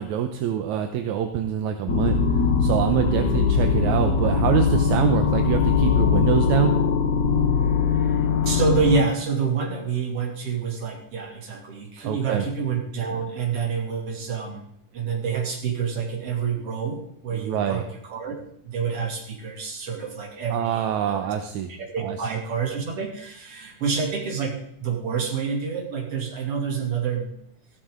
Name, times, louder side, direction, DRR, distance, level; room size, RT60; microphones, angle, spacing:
voice 1, 0.0-6.7 12.0-12.5 17.3-17.8 20.5-21.7 22.0-22.2, right 9 dB, 80° right, 6 dB, 2.2 m, -25 dB
sound 1, 1.9-9.0, left 6 dB, 80° left, 0.9 m, -21 dB
voice 2, 8.0-14.6 14.9-18.4 18.6-21.3 21.8-27.3, right 6 dB, 50° right, 0 dB, 3.5 m, -28 dB
15.0 x 13.0 x 3.8 m, 0.73 s
omnidirectional pair, 3.4 m